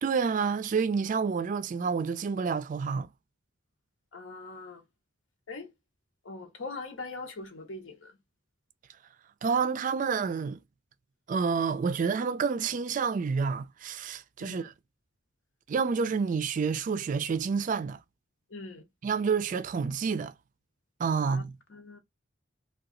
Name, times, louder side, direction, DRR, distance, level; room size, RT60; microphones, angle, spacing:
voice 1, 0.0-3.1 9.4-10.6 11.3-14.7 15.7-18.0 19.0-20.3 21.0-21.6, right 5 dB, 45° right, 0.3 m, -29 dB
voice 2, 4.1-4.8 5.5-5.7 6.2-8.1 14.4-14.7 18.5-18.8 21.2-21.4 21.7-22.0, left 3 dB, 85° left, 0.9 m, -41 dB
2.8 x 2.3 x 3.7 m
head